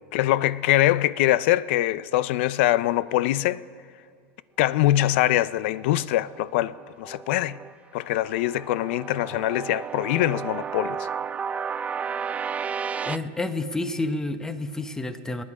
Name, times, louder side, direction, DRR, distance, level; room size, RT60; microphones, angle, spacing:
voice 1, 0.1-3.6 4.6-7.6 7.9-11.0, left 14 dB, 70° left, 0.5 m, -23 dB
sound 1, 5.4-7.7 8.1-13.2, right 6 dB, 20° right, 0.4 m, -33 dB
voice 2, 13.0-15.4, left 2 dB, 10° left, 1.0 m, -29 dB
26.5 x 9.9 x 4.8 m
supercardioid pair, 115°, 6 cm